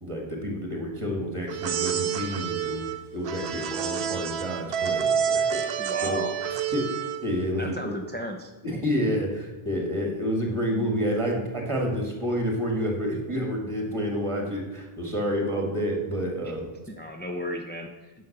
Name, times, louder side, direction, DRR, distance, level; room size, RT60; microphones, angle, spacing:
voice 1, 0.0-2.8 3.1-6.2 6.7-6.9 7.2-7.9 8.6-16.7, equal, 30° right, 0 dB, 2.1 m, -29 dB
sound 1, 1.5-7.4, right 8 dB, 90° right, 0.9 m, -28 dB
voice 2, 5.8-6.3 7.6-8.5 16.4-16.5 16.9-18.1, left 1 dB, 10° left, 2 dB, 0.6 m, -34 dB
9.6 x 5.6 x 6.7 m, 1.1 s
omnidirectional pair, 1.0 m